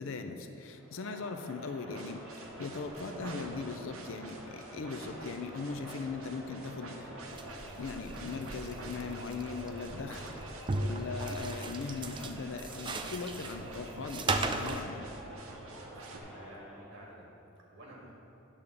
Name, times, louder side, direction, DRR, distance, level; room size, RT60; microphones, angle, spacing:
voice 1, 0.0-2.2 2.6-7.1 7.8-10.4 10.8-15.1, left 4 dB, 65° left, 7 dB, 0.5 m, -39 dB
Crowd, 0.8-17.1, equal, 5° right, 1.4 m, -49 dB
sound 1, 1.9-16.2, right 2 dB, 85° right, 0.8 m, -49 dB
sound 2, 7.3-14.8, right 3 dB, 25° right, 0.3 m, -37 dB
voice 2, 15.8-17.3 17.7-18.1, right 1 dB, 60° right, -3 dB, 1.7 m, -51 dB
8.4 x 3.7 x 6.5 m, 2.8 s
head